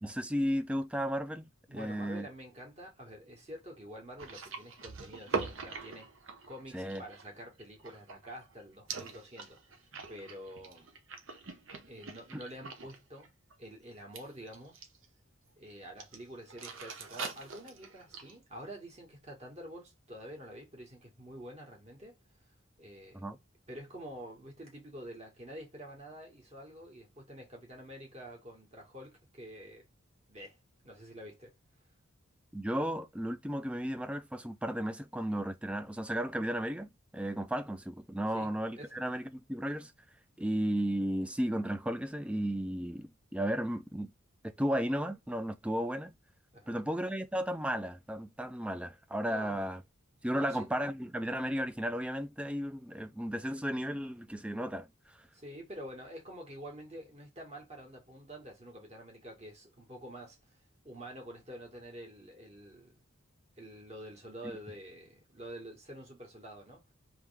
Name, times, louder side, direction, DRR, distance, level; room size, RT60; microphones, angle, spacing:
voice 1, 0.0-2.3 6.7-7.0 23.1-23.4 32.5-39.9 40.4-44.1 44.4-46.1 46.7-49.8 50.2-54.9 55.1-55.2, equal, 5° right, 0.3 m, -34 dB
voice 2, 1.7-6.1 6.5-10.9 11.9-13.3 13.6-14.8 15.6-22.2 22.8-23.2 23.7-29.9 30.3-30.6 30.8-31.5 38.3-38.5 38.8-39.0 46.5-46.8 49.3-49.7 50.3-50.7 55.3-60.6 60.8-63.0 63.6-66.9, equal, 30° right, 1.7 m, -48 dB
sound 1, 4.2-8.5 8.9-13.0 13.2-13.5 14.1-15.1 16.0-16.2 16.5-18.4, right 4 dB, 65° right, 0.9 m, -42 dB
3.5 x 3.2 x 3.4 m
head